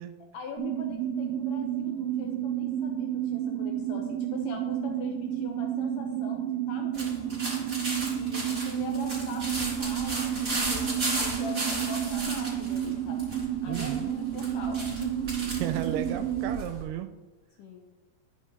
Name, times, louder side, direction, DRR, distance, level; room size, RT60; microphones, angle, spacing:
voice 1, 0.3-7.4 8.1-13.3 13.6-15.3 17.6-17.9, left 4 dB, 75° left, 2 dB, 2.0 m, -42 dB
sound 1, 0.6-16.6, right 10 dB, 50° right, 2.2 m, -31 dB
sound 2, 6.9-16.8, right 2 dB, 20° right, 2.8 m, -35 dB
voice 2, 13.7-14.2 15.6-17.1, right 11 dB, 80° right, 9 dB, 2.4 m, -33 dB
12.0 x 6.8 x 3.3 m, 1.2 s
omnidirectional pair, 4.7 m